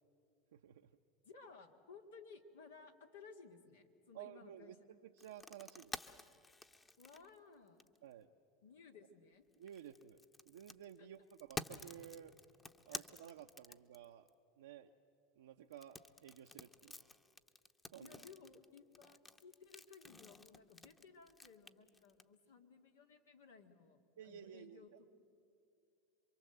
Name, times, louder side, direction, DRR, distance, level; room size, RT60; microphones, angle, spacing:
voice 1, 0.5-0.9 4.1-6.0 8.0-8.3 9.6-10.2 10.5-12.3 12.9-14.3 14.6-14.9 15.4-17.0 17.9-18.2 24.2-25.0, right 10 dB, 85° right, 4 dB, 0.7 m, -54 dB
voice 2, 1.2-4.7 7.0-7.8 8.6-9.4 11.0-11.1 12.9-13.0 18.0-24.9, left 5 dB, 90° left, 4 dB, 2.0 m, -59 dB
sound 1, 5.2-8.1 9.5-14.3 15.7-22.2, left 3 dB, 20° left, 0.9 m, -51 dB
27.0 x 23.5 x 7.9 m, 2.6 s
hypercardioid pair, 95°, 0 cm